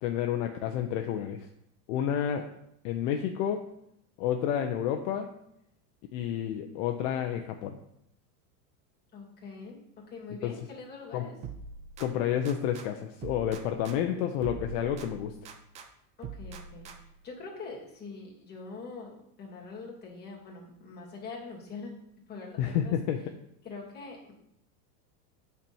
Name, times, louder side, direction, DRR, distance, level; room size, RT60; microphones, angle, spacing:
voice 1, 0.0-1.5 1.9-2.5 2.8-3.7 4.2-5.3 6.1-7.8 10.4-10.6 11.1-11.3 12.0-15.3 22.6-23.2, left 9 dB, 55° left, 5 dB, 0.9 m, -30 dB
voice 2, 9.1-11.4 16.2-19.1 19.4-21.9 22.3-22.9 23.6-24.3, left 4 dB, 20° left, -4 dB, 2.9 m, -43 dB
sound 1, 11.4-12.9 13.2-15.9 16.2-17.3, right 5 dB, 15° right, 0.3 m, -43 dB
8.5 x 4.6 x 7.1 m, 0.76 s
supercardioid pair, 150°, 46 cm